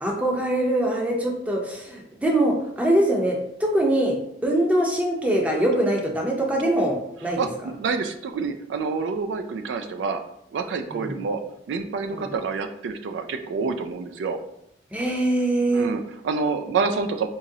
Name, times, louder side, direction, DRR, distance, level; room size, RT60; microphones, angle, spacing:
voice 1, 0.0-4.2 4.4-7.4 10.9-11.2 12.2-12.3 14.9-15.9, right 1 dB, 10° right, -1 dB, 0.6 m, -23 dB
voice 2, 7.4-10.2 10.5-11.4 11.7-14.4 15.7-17.3, right 4 dB, 80° right, 7 dB, 0.3 m, -27 dB
3.8 x 3.0 x 2.7 m, 0.79 s
head